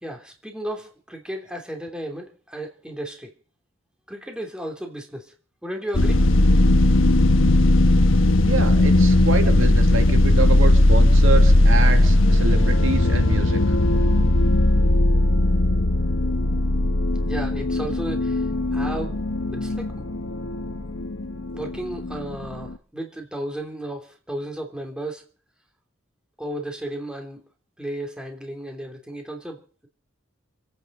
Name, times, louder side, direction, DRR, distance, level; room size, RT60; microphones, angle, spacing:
voice 1, 0.0-3.3 4.1-5.3 5.6-6.3 17.2-18.4 18.7-19.2 19.5-19.9 21.5-25.2 26.4-27.5 27.8-29.9, right 1 dB, 5° right, 2 dB, 3.2 m, -34 dB
sound 1, 5.9-22.7, left 1 dB, 75° left, 1.2 m, -18 dB
voice 2, 8.4-13.6, right 3 dB, 75° right, 5 dB, 2.5 m, -27 dB
27.5 x 9.4 x 5.5 m, 0.42 s
head